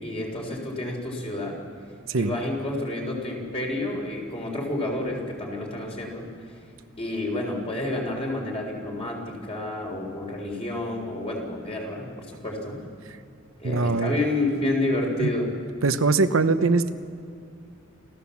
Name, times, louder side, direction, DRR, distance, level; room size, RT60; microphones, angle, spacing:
voice 1, 0.0-1.6 2.2-6.3 7.0-12.8 13.6-15.5, left 2 dB, 30° left, 0 dB, 4.1 m, -29 dB
voice 2, 13.6-14.1 15.2-15.3 15.8-16.9, right 3 dB, 85° right, 10 dB, 0.9 m, -22 dB
28.0 x 15.0 x 7.2 m, 2.5 s
head